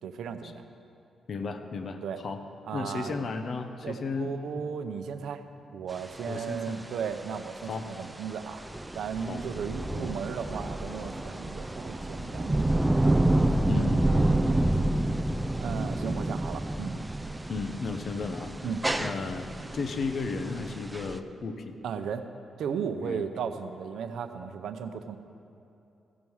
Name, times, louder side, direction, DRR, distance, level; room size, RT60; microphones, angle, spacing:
voice 1, 0.0-0.6 2.0-2.2 2.7-3.3 3.8-5.4 5.7-8.6 8.9-13.4 14.5-14.9 15.6-17.0 18.6-18.8 21.8-22.2 22.6-25.2, right 7 dB, 85° right, 9 dB, 0.6 m, -36 dB
voice 2, 1.3-2.4 2.7-4.3 6.3-6.8 7.6-7.9 9.3-9.4 13.7-14.1 17.5-18.5 19.0-19.5 19.7-21.8 23.0-23.3, left 4 dB, 50° left, 7 dB, 0.7 m, -34 dB
sound 1, 5.9-21.2, right 1 dB, 10° right, 0.3 m, -29 dB
15.0 x 7.1 x 4.7 m, 2.7 s
wide cardioid pair, 145°, 0 cm